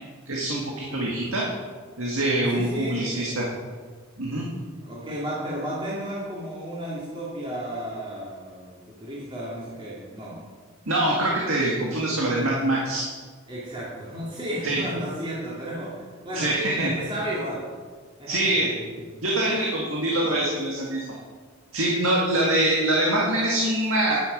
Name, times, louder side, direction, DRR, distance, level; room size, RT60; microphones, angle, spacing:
voice 1, 0.3-1.5 2.0-3.5 4.2-4.5 10.9-13.0 14.6-14.8 16.3-16.9 18.3-18.8 19.2-21.1 21.7-24.3, right 1 dB, 80° right, -3 dB, 1.9 m, -24 dB
voice 2, 2.5-3.5 4.8-10.4 13.5-17.7 18.2-18.9, equal, 25° right, -7 dB, 2.7 m, -33 dB
11.0 x 9.7 x 5.3 m, 1.5 s
head